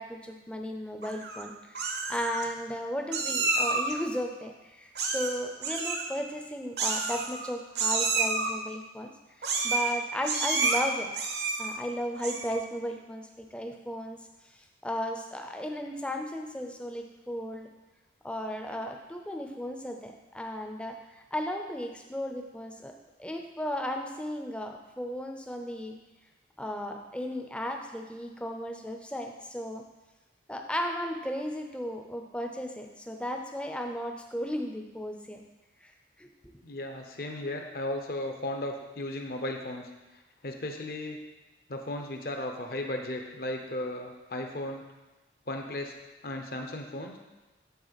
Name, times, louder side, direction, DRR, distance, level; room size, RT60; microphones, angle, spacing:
voice 1, 0.0-9.1 9.6-11.1 11.6-14.2 14.8-17.7 18.2-22.9 23.2-25.9 26.6-29.8 30.5-35.4 35.8-35.9 36.2-36.3, equal, 5° left, 3 dB, 0.5 m, -35 dB
Meow, 1.0-1.4 1.7-2.4 3.1-3.9 4.9-5.4 5.6-6.0 6.8-7.5 7.7-8.5 9.4-9.9 10.2-10.8 11.1-11.7 12.1-12.6, right 4 dB, 70° right, 0.8 m, -29 dB
voice 2, 36.6-39.9 40.4-41.2 41.7-44.9 45.5-45.9 46.2-47.2, left 1 dB, 55° left, 3 dB, 0.7 m, -35 dB
9.6 x 3.7 x 4.0 m, 1.1 s
head